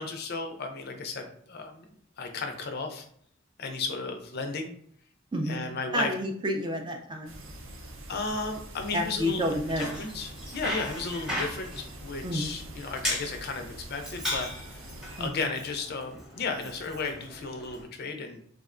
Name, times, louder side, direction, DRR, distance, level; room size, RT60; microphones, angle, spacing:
voice 1, 0.0-1.8 2.2-3.1 3.6-4.7 5.5-6.1 8.1-14.8 15.2-18.4, left 4 dB, 50° left, 5 dB, 0.4 m, -34 dB
voice 2, 5.3-5.7 5.9-7.3 8.9-10.0 12.2-12.5 15.2-15.5, equal, 20° right, 3 dB, 0.4 m, -30 dB
sound 1, 7.2-15.3, right 1 dB, 70° right, 0.6 m, -45 dB
Bicycle, 9.5-17.8, left 1 dB, 5° right, 0.8 m, -38 dB
3.5 x 2.1 x 2.4 m, 0.63 s
head